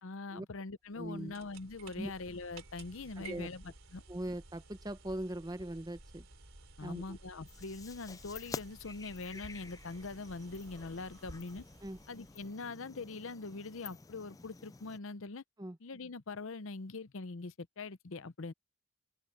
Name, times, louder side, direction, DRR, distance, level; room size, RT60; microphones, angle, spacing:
voice 1, 0.0-4.0 6.8-11.6 12.1-15.4 15.8-18.5, left 3 dB, 65° left, 0.7 m, -43 dB
voice 2, 0.9-1.3 2.0-2.1 3.2-3.5 4.1-6.2 6.8-7.2 11.8-12.0 15.6-15.8, right 1 dB, 20° right, 0.8 m, -40 dB
sound 1, 0.9-12.7, right 3 dB, 65° right, 3.8 m, -55 dB
sound 2, 7.5-15.0, left 4 dB, 15° left, 0.3 m, -50 dB
open air
head